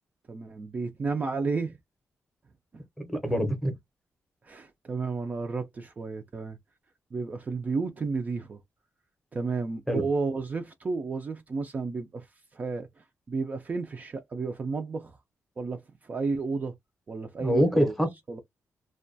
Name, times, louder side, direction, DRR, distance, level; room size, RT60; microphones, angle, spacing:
voice 1, 0.3-1.8 4.4-6.6 7.1-8.6 9.3-12.3 12.5-12.9 13.3-15.2 15.6-16.7 17.1-17.9 18.3-18.4, right 4 dB, 30° right, 0.3 m, -32 dB
voice 2, 3.0-3.7 9.9-10.0 17.4-18.1, equal, ahead, 0.6 m, -25 dB
2.2 x 2.2 x 2.6 m
wide cardioid pair, 165°, 5 cm